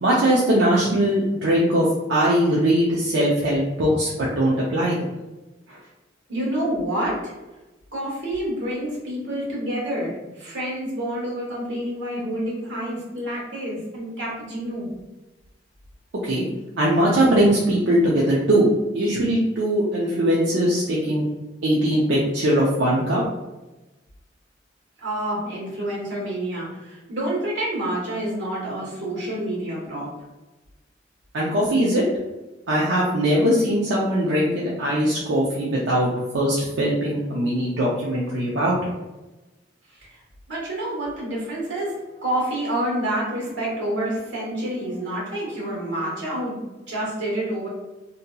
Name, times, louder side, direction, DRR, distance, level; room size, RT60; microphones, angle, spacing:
voice 1, 0.0-5.1 16.2-16.5 16.8-18.7 18.9-21.2 21.6-23.2 31.3-32.0 32.7-38.9, right 1 dB, 70° right, -5 dB, 0.5 m, -21 dB
voice 2, 6.3-7.3 7.9-14.9 25.0-30.1 40.5-46.6 46.9-47.7, right 1 dB, 90° right, -5 dB, 1.3 m, -28 dB
2.7 x 2.6 x 2.3 m, 1.1 s
head